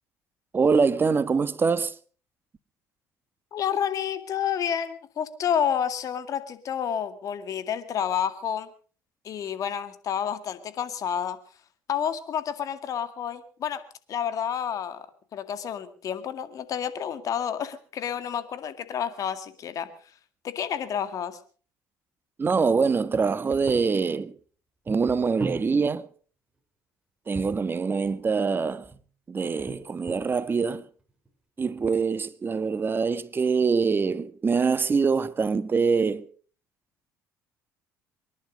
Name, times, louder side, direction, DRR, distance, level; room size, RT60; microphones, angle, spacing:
voice 1, 0.5-1.9 22.4-24.3 24.9-26.0 27.3-28.8 29.3-30.8 31.6-36.2, right 5 dB, 30° right, 1.3 m, -24 dB
voice 2, 3.5-8.7 9.2-11.4 11.9-13.8 14.1-15.0 15.3-19.9 20.4-21.4, left 8 dB, 55° left, 2.1 m, -29 dB
sound 1, 23.1-23.2 23.5-23.8 24.9-25.6 27.3-28.1 28.7-29.0 29.6-30.3 31.1-31.3 31.6-31.9, right 2 dB, 10° right, 6.1 m, -38 dB
24.0 x 11.0 x 5.2 m
supercardioid pair, 75°, 7 cm